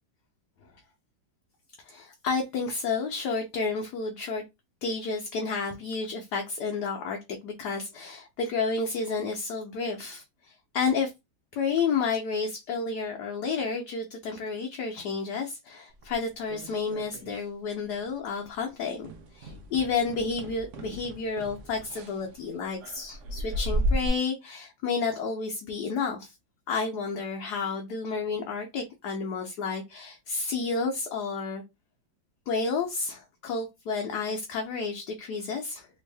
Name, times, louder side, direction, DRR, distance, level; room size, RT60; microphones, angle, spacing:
voice 1, 1.8-4.4 4.8-11.1 11.5-26.3 26.7-31.6 32.5-35.9, left 4 dB, 65° left, 1.1 m, -31 dB
sound 1, 16.0-17.5 17.7-18.1 18.4-18.6 19.0-24.1, equal, 85° right, 0.6 m, -34 dB
3.5 x 2.5 x 3.2 m
omnidirectional pair, 2.1 m